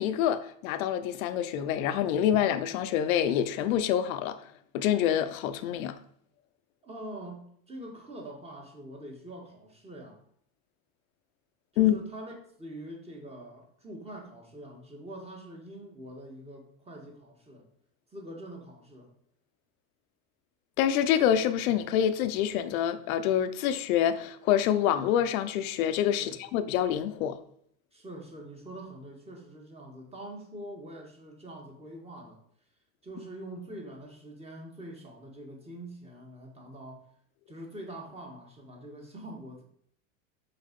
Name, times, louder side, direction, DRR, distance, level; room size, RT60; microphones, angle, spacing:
voice 1, 0.0-4.4 4.7-6.0 11.8-11.9 20.8-27.4, left 10 dB, 75° left, 0.8 m, -26 dB
voice 2, 6.8-10.2 11.7-17.6 18.1-19.1 26.2-26.4 27.9-32.4 33.0-37.0 37.5-39.6, right 1 dB, 15° right, 1.8 m, -44 dB
5.8 x 4.3 x 5.2 m
supercardioid pair, 120°, 42 cm